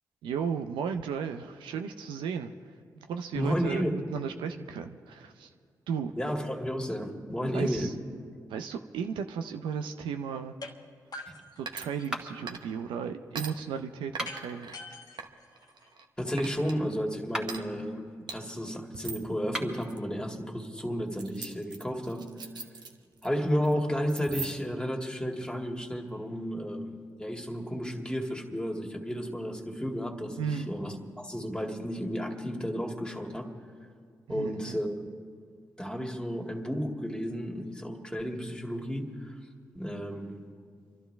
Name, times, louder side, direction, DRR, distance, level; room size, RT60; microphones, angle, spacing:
voice 1, 0.2-2.5 3.0-5.5 5.9-6.1 7.5-7.9 8.5-10.5 11.6-14.7 30.4-30.7 34.3-34.8, right 7 dB, 85° right, 7 dB, 0.5 m, -35 dB
voice 2, 3.3-3.9 6.2-7.9 16.2-18.0 18.3-22.3 23.2-33.5 34.3-35.1 35.8-39.3 39.7-40.4, equal, 10° left, 2 dB, 2.1 m, -32 dB
sound 1, 10.6-10.7 11.1-12.3 14.2-16.2, left 2 dB, 55° left, 1.3 m, -45 dB
sound 2, 11.7-12.2 12.5-12.9 13.4-13.5 14.2-14.8 15.2-16.1 16.4-16.8 17.5-17.6 18.3-18.4 18.9-19.3 19.8-20.0 21.2-23.3 23.6-23.7 24.1-24.8, right 5 dB, 65° right, 1.0 m, -41 dB
sound 3, 12.1-12.6 14.0-14.6 17.2-17.7 19.4-19.9, equal, 10° right, 1.9 m, -37 dB
29.5 x 12.0 x 3.4 m, 2.1 s
supercardioid pair, 40°, 8 cm